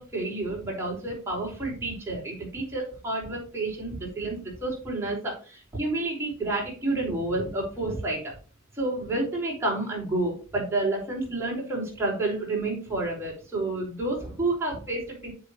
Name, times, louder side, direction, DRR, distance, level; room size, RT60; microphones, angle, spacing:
voice 1, 0.0-8.3 8.7-15.3, right 2 dB, 10° right, -4 dB, 4.6 m, -30 dB
10.5 x 7.1 x 3.0 m, 0.38 s
head